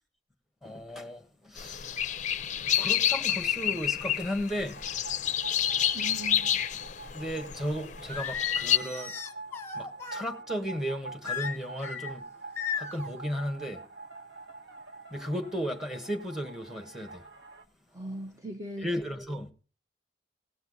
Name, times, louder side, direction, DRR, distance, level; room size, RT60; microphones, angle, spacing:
voice 1, 0.6-4.8 7.1-9.1 9.7-12.2 12.8-13.8 15.1-17.3 18.8-19.5, equal, ahead, 1.5 m, -35 dB
sound 1, 1.6-8.8, left 10 dB, 40° left, 0.5 m, -29 dB
sound 2, 4.7-17.6, right 3 dB, 85° right, 1.6 m, -45 dB
voice 2, 5.9-6.6 17.9-18.9, right 2 dB, 20° right, 0.7 m, -39 dB
Singing, 8.1-10.3 11.2-12.1 12.6-13.1, left 7 dB, 15° left, 1.2 m, -35 dB
17.5 x 7.0 x 4.0 m
head